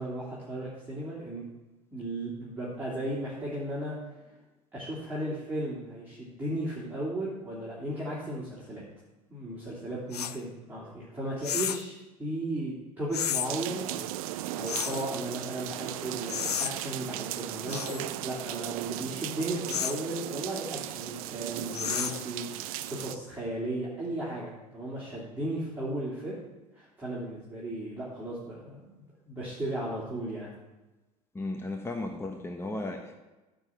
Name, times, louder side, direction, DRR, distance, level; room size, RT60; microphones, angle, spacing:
voice 1, 0.0-1.5 1.9-4.1 4.7-8.8 9.3-26.4 26.7-30.5, right 1 dB, 10° right, -8 dB, 3.0 m, -35 dB
sound 1, 10.1-10.4 11.4-11.9 13.1-13.5 14.7-15.1 16.3-16.7 17.7-18.0 19.7-20.0 21.7-22.3, left 9 dB, 85° left, 0.4 m, -32 dB
sound 2, 13.4-23.2, right 14 dB, 65° right, 0.5 m, -37 dB
voice 2, 31.3-33.1, left 2 dB, 15° left, 3 dB, 1.1 m, -35 dB
9.5 x 4.0 x 7.3 m, 1.1 s
hypercardioid pair, 75°, 19 cm